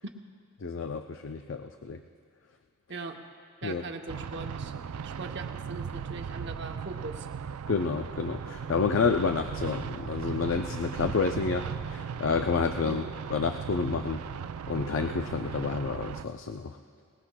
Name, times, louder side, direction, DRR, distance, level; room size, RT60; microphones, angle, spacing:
voice 1, 0.6-2.0 3.6-3.8 7.7-13.0 13.3-14.2 14.7-16.8, left 5 dB, 60° left, 6 dB, 0.4 m, -29 dB
voice 2, 3.6-4.7 5.0-7.3 12.8-13.1, right 3 dB, 55° right, 3 dB, 0.8 m, -40 dB
sound 1, 4.1-16.2, right 7 dB, 90° right, 0.4 m, -37 dB
22.0 x 19.5 x 2.2 m, 2.1 s
head